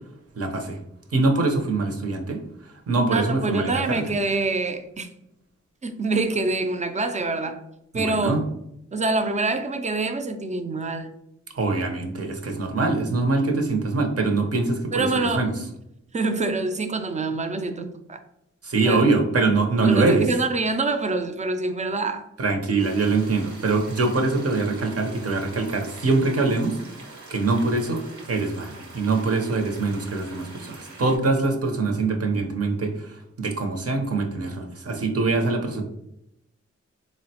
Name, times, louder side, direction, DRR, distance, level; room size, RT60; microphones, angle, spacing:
voice 1, 0.4-0.8 1.1-2.4 2.9-4.0 7.9-8.4 11.6-15.5 18.6-20.2 22.4-26.8 27.3-28.0 28.3-33.1 33.4-35.8, right 3 dB, 55° right, 4 dB, 0.7 m, -23 dB
voice 2, 3.1-5.1 5.8-7.6 7.9-8.4 8.9-11.1 14.9-15.5 16.1-18.2 18.8-19.1 19.8-22.3, right 3 dB, 25° right, 8 dB, 0.4 m, -26 dB
sound 1, 22.8-31.2, right 3 dB, 85° right, 0.8 m, -44 dB
3.8 x 2.1 x 2.7 m, 0.80 s
wide cardioid pair, 65°, 29 cm